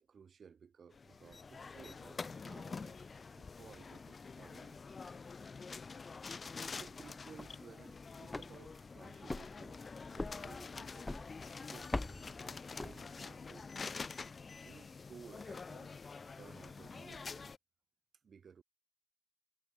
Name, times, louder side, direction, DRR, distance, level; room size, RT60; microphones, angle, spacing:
voice 1, 0.0-3.1 3.3-4.8 5.3-5.5 6.7-14.0 14.6-17.5 18.2-18.6, right 6 dB, 75° right, 4.2 m, -58 dB
sound 1, 0.9-17.6, left 4 dB, 50° left, 0.4 m, -47 dB
sound 2, 7.4-13.5, left 2 dB, 20° left, 0.8 m, -45 dB
wide cardioid pair, 100°, 0 cm